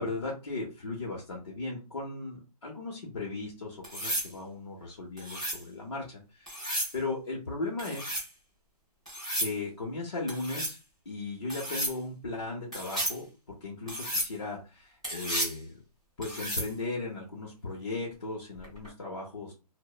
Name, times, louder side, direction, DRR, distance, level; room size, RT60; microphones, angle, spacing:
voice 1, 0.0-8.1 9.4-10.8 11.1-15.8 16.2-19.5, left 3 dB, 45° left, -5 dB, 0.7 m, -37 dB
sound 1, 3.8-4.3 5.2-5.6 6.5-6.9 7.8-8.3 9.1-9.5 10.3-10.8 11.5-11.9 12.7-13.2 13.9-14.3 15.0-15.6 16.2-16.7 18.6-18.9, equal, 10° right, 0.4 m, -33 dB
2.9 x 2.0 x 2.2 m, 0.30 s
hypercardioid pair, 180°, 20 cm